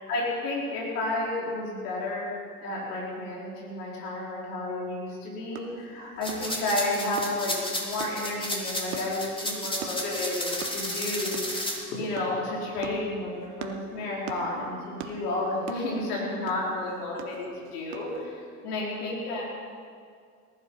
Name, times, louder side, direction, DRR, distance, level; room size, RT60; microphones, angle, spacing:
voice 1, 0.0-2.3 2.6-19.4, left 2 dB, 85° left, -4 dB, 4.5 m, -31 dB
sound 1, 5.5-18.2, right 8 dB, 75° right, 1.6 m, -43 dB
sound 2, 6.2-11.8, left 1 dB, 10° left, 3.6 m, -32 dB
19.5 x 11.0 x 5.6 m, 2.2 s
hypercardioid pair, 80°, 45 cm